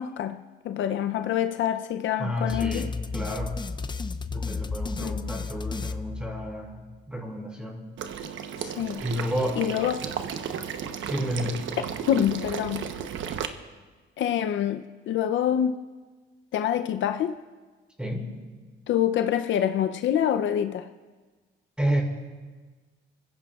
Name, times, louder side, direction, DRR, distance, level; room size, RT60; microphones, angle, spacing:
voice 1, 0.0-2.9 5.0-5.2 8.6-9.0 9.6-10.1 12.1-12.9 14.2-15.8 16.5-17.4 18.9-20.9, left 10 dB, 70° left, 0.6 m, -26 dB
voice 2, 2.2-3.6 4.3-7.9 9.0-9.6 11.0-11.7 18.0-18.4 21.8-22.0, equal, 5° right, 5.1 m, -31 dB
sound 1, 2.5-6.8, left 4 dB, 20° left, 0.6 m, -33 dB
Water / Liquid, 8.0-13.5, right 8 dB, 75° right, 1.0 m, -34 dB
27.5 x 15.5 x 2.4 m
cardioid pair, 90°, 20 cm